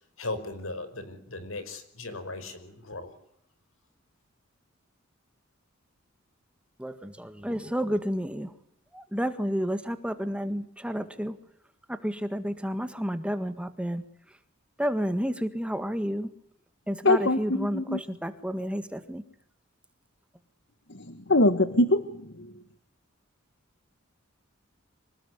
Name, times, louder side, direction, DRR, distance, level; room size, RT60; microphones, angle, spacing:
voice 1, 0.2-3.1, left 2 dB, 85° left, 11 dB, 5.2 m, -37 dB
voice 2, 6.8-8.5 8.9-11.4 11.9-14.4 14.8-16.3 16.9-19.2, equal, 5° right, 10 dB, 1.7 m, -31 dB
voice 3, 17.0-18.0 20.9-22.6, left 2 dB, 60° left, 12 dB, 1.7 m, -24 dB
26.0 x 19.5 x 9.6 m, 0.71 s
head